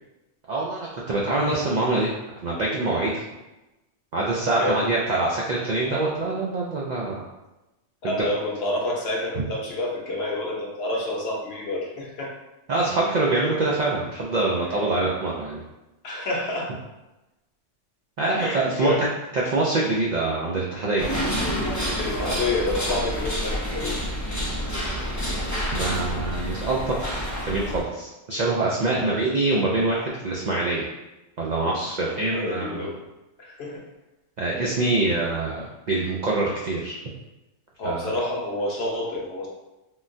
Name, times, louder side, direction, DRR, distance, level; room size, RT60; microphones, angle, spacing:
voice 1, 0.5-2.1 2.4-3.2 4.1-7.2 8.0-8.1 12.7-15.6 18.2-18.9 19.3-21.1 25.7-30.9 31.4-32.9 34.4-37.0 37.8-38.0, right 2 dB, 65° right, -4 dB, 0.4 m, -25 dB
voice 2, 2.9-3.2 4.6-4.9 8.0-12.3 16.0-16.8 18.3-19.1 19.4-19.5 21.9-24.0 28.9-29.3 32.0-33.0 33.4-33.8 37.8-39.5, left 2 dB, 60° left, -2 dB, 0.8 m, -29 dB
sound 1, 21.0-27.8, equal, 25° left, 0.4 m, -28 dB
3.7 x 2.2 x 2.5 m, 1.0 s
omnidirectional pair, 1.2 m